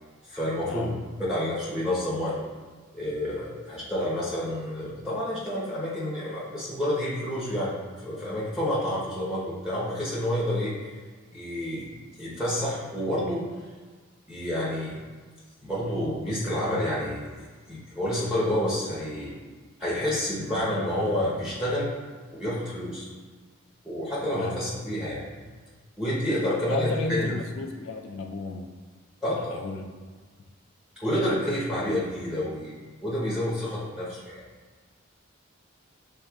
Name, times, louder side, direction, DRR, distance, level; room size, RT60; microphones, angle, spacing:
voice 1, 0.3-0.9 1.3-2.4 2.9-10.7 11.3-11.9 12.2-13.4 14.3-15.0 15.6-19.3 19.8-21.9 22.3-23.1 23.8-25.4 26.0-27.3 29.2-29.6 31.0-34.4, left 1 dB, 5° right, -7 dB, 0.9 m, -29 dB
voice 2, 26.7-28.7 29.5-29.9, left 3 dB, 70° left, 2 dB, 0.4 m, -33 dB
6.4 x 3.4 x 2.3 m, 1.5 s
head